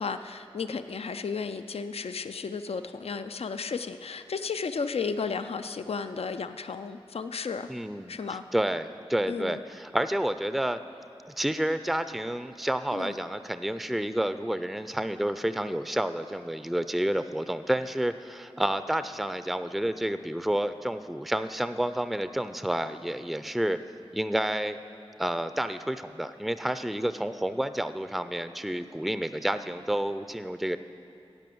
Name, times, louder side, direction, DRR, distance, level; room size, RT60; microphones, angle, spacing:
voice 1, 0.0-7.7 8.1-8.4 9.3-9.6 12.9-13.2, left 5 dB, 80° left, 10 dB, 0.4 m, -33 dB
voice 2, 7.7-8.2 8.5-10.8 11.4-23.8 24.1-24.8 25.2-30.8, right 1 dB, ahead, 11 dB, 0.4 m, -29 dB
10.5 x 8.4 x 7.7 m, 2.8 s
wide cardioid pair, 45°, 10 cm